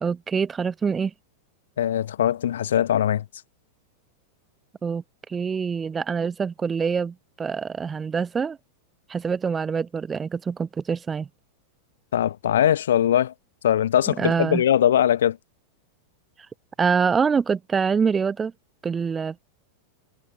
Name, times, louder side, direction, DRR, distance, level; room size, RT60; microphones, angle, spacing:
voice 1, 0.0-1.1 4.8-5.0 5.3-8.6 9.1-11.3 14.2-14.6 16.8-18.5 18.8-19.4, right 6 dB, 15° right, 0.9 m, -25 dB
voice 2, 1.8-3.2 12.1-13.3 13.6-15.4, left 10 dB, 60° left, 1.1 m, -21 dB
figure-of-eight pair, 90°, 0 cm